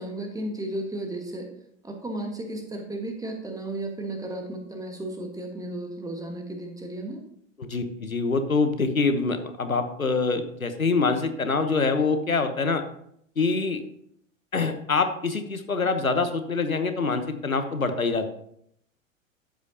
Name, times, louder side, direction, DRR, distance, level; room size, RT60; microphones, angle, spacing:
voice 1, 0.0-1.5 1.8-7.2, right 1 dB, 10° right, 4 dB, 1.6 m, -34 dB
voice 2, 7.6-12.8 13.4-13.8 14.5-18.3, left 4 dB, 90° left, 8 dB, 1.1 m, -25 dB
11.5 x 8.1 x 2.8 m, 0.70 s
figure-of-eight pair, 90°, 40 cm